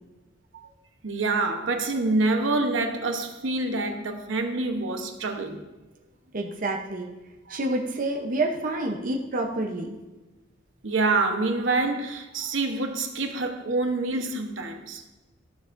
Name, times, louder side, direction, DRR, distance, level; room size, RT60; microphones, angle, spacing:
voice 1, 1.0-5.6 7.5-7.7 10.8-15.0, right 3 dB, 70° right, 0.9 m, -26 dB
voice 2, 6.3-7.1 7.5-10.0, right 2 dB, 40° right, 0.8 m, -28 dB
14.0 x 7.0 x 2.6 m
head